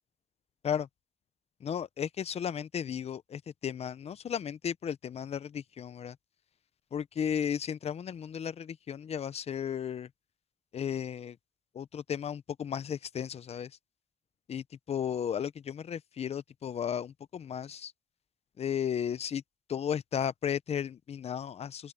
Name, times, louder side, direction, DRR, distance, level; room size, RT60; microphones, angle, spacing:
voice 1, 1.6-6.2 6.9-10.1 10.7-11.4 11.7-13.7 14.5-17.9 18.6-19.4 19.7-21.9, left 8 dB, 80° left, 0.6 m, -34 dB
open air
cardioid pair, 70°, 11 cm